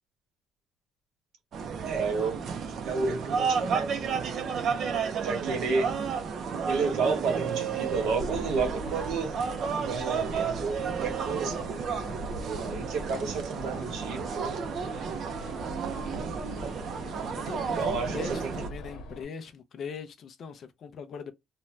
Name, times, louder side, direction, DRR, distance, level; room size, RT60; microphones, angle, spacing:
sound 1, 1.5-18.7, right 6 dB, 45° right, 0.5 m, -32 dB
voice 1, 1.8-2.4 2.8-4.3 5.2-5.9 6.7-9.4 9.9-11.6 12.6-14.4 17.8-18.2 18.4-18.5, right 4 dB, 75° right, 1.0 m, -31 dB
wind turbine (binaural), 7.9-19.2, left 2 dB, 80° left, 1.1 m, -42 dB
voice 2, 17.4-21.3, left 5 dB, 40° left, 0.5 m, -40 dB
2.6 x 2.1 x 3.1 m
cardioid pair, 165°, 0 cm